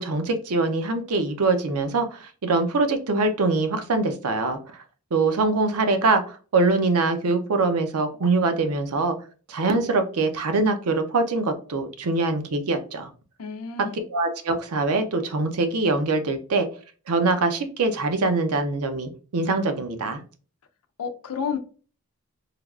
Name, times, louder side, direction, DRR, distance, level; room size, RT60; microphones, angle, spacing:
voice 1, 0.0-4.8 5.1-9.2 9.5-13.1 14.1-16.7 17.1-20.2, right 3 dB, 80° right, 0.5 m, -23 dB
voice 2, 13.4-14.0 21.0-21.6, left 6 dB, 85° left, 0.5 m, -30 dB
3.3 x 2.3 x 2.3 m
head